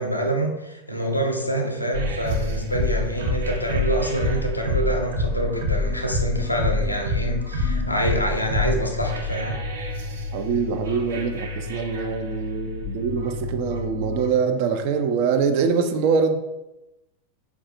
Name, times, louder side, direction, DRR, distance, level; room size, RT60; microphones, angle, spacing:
voice 1, 0.0-9.6, right 1 dB, 85° left, 0.5 m, -26 dB
sound 1, 1.9-14.3, left 2 dB, 60° right, 0.8 m, -27 dB
voice 2, 10.3-16.4, right 6 dB, 45° right, 0.4 m, -24 dB
4.7 x 2.4 x 2.5 m
figure-of-eight pair, 90°, 0 cm